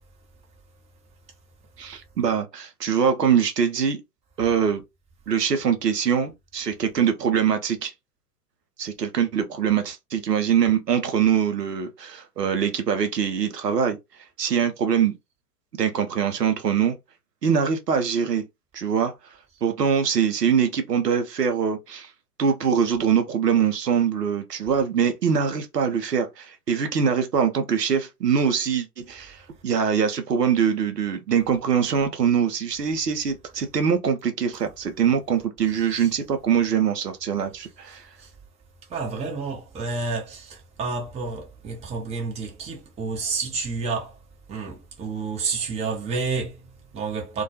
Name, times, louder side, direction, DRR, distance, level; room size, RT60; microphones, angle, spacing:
voice 1, 1.8-4.0 4.4-4.8 5.3-7.9 8.8-14.0 14.4-15.1 15.8-17.0 17.4-18.5 18.7-19.1 19.6-22.1 22.4-38.1, right 7 dB, 85° right, 0.6 m, -23 dB
voice 2, 35.7-36.1 38.2-38.3 38.9-44.2 44.5-47.4, right 4 dB, 15° right, 0.6 m, -30 dB
2.2 x 2.2 x 2.7 m
figure-of-eight pair, 90°, 47 cm